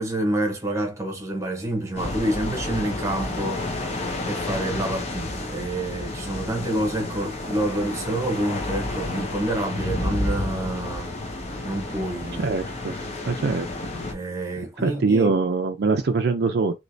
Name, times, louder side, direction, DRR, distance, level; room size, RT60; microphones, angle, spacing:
voice 1, 0.0-3.8 4.3-11.1 11.6-12.5 14.1-15.4, right 1 dB, 15° right, 1.0 m, -28 dB
sound 1, 2.0-14.1, left 2 dB, 35° left, 0.8 m, -31 dB
voice 2, 12.4-12.9 13.3-13.7 14.8-16.8, right 4 dB, 60° right, 0.4 m, -23 dB
3.2 x 2.9 x 2.6 m
head